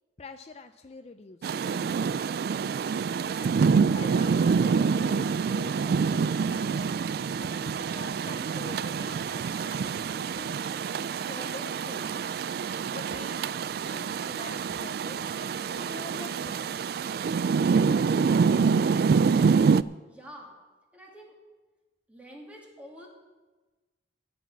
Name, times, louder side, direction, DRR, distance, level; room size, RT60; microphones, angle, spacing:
voice 1, 0.2-1.7 3.2-6.9 7.4-10.8 11.3-12.1 12.9-13.4 13.9-15.3 15.7-16.8, left 3 dB, 35° left, 8 dB, 0.5 m, -45 dB
Rain, 1.4-19.8, right 5 dB, 60° right, 0.3 m, -26 dB
voice 2, 20.1-20.5 20.9-21.3 22.1-23.1, equal, 10° right, -2 dB, 2.5 m, -47 dB
15.0 x 6.2 x 8.4 m, 1.2 s
head